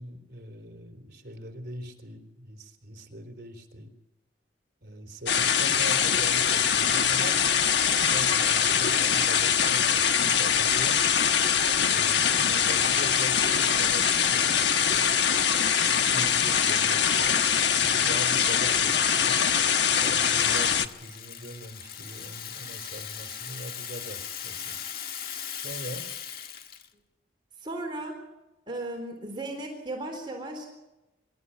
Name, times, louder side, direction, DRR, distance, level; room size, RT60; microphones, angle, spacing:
voice 1, 0.0-3.9 4.8-7.4 8.0-10.9 11.8-14.5 14.7-17.3 17.8-19.4 19.9-24.8 25.5-26.1, right 1 dB, 55° right, 6 dB, 3.8 m, -41 dB
sound 1, 5.3-20.9, left 7 dB, 70° left, 1.2 m, -23 dB
Rattle (instrument), 19.9-26.9, left 8 dB, 55° left, 1.6 m, -39 dB
voice 2, 27.6-28.2 28.7-30.7, right 2 dB, 25° right, 2 dB, 3.9 m, -35 dB
26.0 x 13.0 x 9.8 m, 0.97 s
head